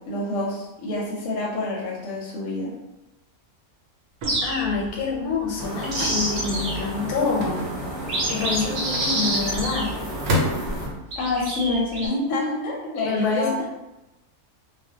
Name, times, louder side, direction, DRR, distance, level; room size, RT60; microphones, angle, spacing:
voice 1, 0.1-2.7 11.2-13.5, left 2 dB, 65° left, -4 dB, 0.9 m, -27 dB
sound 1, 4.2-4.9 5.6-6.9 7.5-7.6 8.0-10.3 11.1-12.1, right 1 dB, 55° right, 0.6 m, -27 dB
sound 2, 4.2-4.6 6.0-6.3 7.4-8.1 8.9-9.6 10.3-11.0, left 1 dB, 80° right, 1.1 m, -28 dB
voice 2, 4.4-7.7 8.3-10.0 13.0-13.7, left 4 dB, 90° left, -1 dB, 1.1 m, -26 dB
sound 3, 5.6-10.9, right 1 dB, 15° right, 1.1 m, -33 dB
2.4 x 2.1 x 2.7 m, 0.96 s
omnidirectional pair, 1.6 m